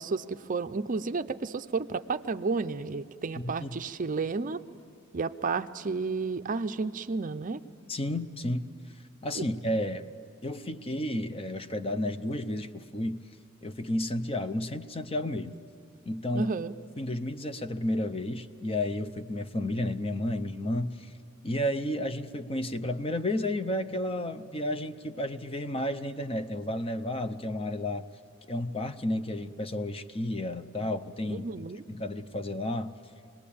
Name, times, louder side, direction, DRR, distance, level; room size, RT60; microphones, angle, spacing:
voice 1, 0.0-4.6 5.1-7.6 9.4-9.5 16.3-16.7 31.3-31.8, right 4 dB, 40° right, 10 dB, 0.5 m, -32 dB
voice 2, 3.4-3.8 7.9-8.7 9.2-10.1 10.4-13.2 13.6-15.6 16.1-16.5 17.0-21.1 21.4-28.1 28.5-32.9, left 1 dB, 30° left, 10 dB, 0.7 m, -32 dB
26.0 x 20.0 x 8.6 m, 2.3 s
head